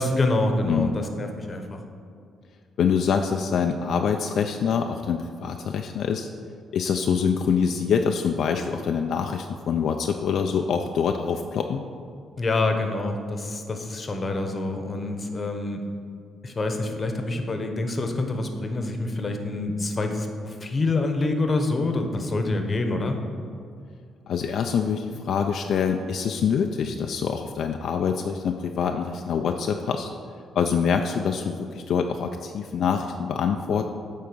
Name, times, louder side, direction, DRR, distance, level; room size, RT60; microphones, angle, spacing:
voice 1, 0.0-1.8 12.4-15.8 16.4-23.2, left 2 dB, 35° left, 5 dB, 0.9 m, -26 dB
voice 2, 2.8-6.3 6.7-11.8 24.3-30.1 30.6-33.8, left 6 dB, 65° left, 4 dB, 0.4 m, -25 dB
8.5 x 3.8 x 6.1 m, 2.3 s
cardioid pair, 90°, 0 cm